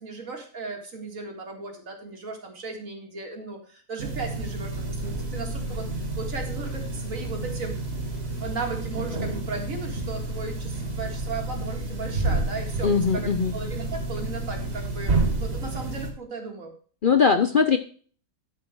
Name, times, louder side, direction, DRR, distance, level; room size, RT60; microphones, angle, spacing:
voice 1, 0.0-5.9 6.2-7.8 8.4-16.7, right 4 dB, 65° right, 3 dB, 2.4 m, -36 dB
sound 1, 4.0-16.1, right 2 dB, 45° right, 2.2 m, -30 dB
voice 2, 12.8-13.5 17.0-17.8, left 6 dB, 50° left, 8 dB, 0.7 m, -20 dB
12.0 x 5.2 x 4.7 m, 0.43 s
omnidirectional pair, 1.5 m